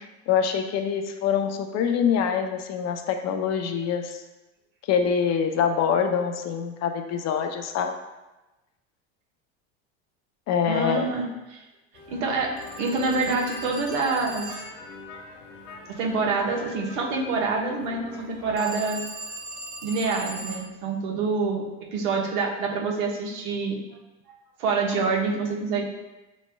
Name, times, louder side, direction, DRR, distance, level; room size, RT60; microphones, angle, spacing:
voice 1, 0.0-4.2 4.9-7.9 10.5-11.2, left 7 dB, 45° left, 6 dB, 0.6 m, -25 dB
voice 2, 10.7-11.6 12.1-14.6 15.9-19.0 19.8-21.6 21.9-23.8 24.6-25.8, right 4 dB, 75° right, 0 dB, 1.1 m, -26 dB
sound 1, 11.9-18.6, left 2 dB, 85° left, 1.2 m, -43 dB
Telephone, 12.6-14.9 18.6-20.8, right 2 dB, 35° right, 0.7 m, -39 dB
7.0 x 3.1 x 2.2 m, 1.0 s
supercardioid pair, 95°, 36 cm